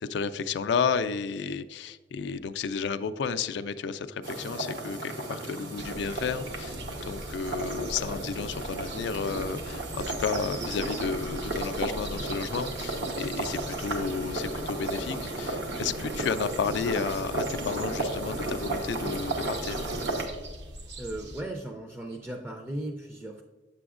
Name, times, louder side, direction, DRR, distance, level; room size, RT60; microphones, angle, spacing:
voice 1, 0.0-6.8 7.0-19.9, left 5 dB, 70° left, 11 dB, 0.3 m, -32 dB
sound 1, 4.2-20.3, right 2 dB, 85° right, 1.1 m, -34 dB
sound 2, 5.8-21.4, right 1 dB, 70° right, 0.8 m, -42 dB
voice 2, 21.0-23.4, right 1 dB, 10° right, 2 dB, 0.4 m, -37 dB
7.8 x 6.8 x 2.4 m, 1.3 s
head